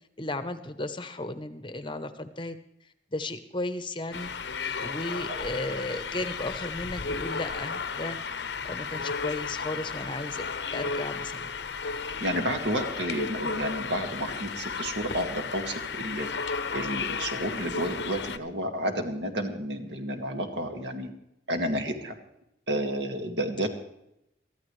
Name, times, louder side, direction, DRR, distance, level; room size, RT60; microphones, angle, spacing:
voice 1, 0.2-2.6 3.1-4.3 4.8-8.2 8.6-10.5 10.7-11.5, left 2 dB, 25° left, 10 dB, 0.8 m, -34 dB
sound 1, 4.1-18.4, left 5 dB, 70° left, 0.8 m, -34 dB
voice 2, 12.2-21.1 21.5-22.2 22.7-23.7, equal, 70° right, 5 dB, 2.0 m, -31 dB
23.5 x 14.0 x 3.2 m, 0.82 s
head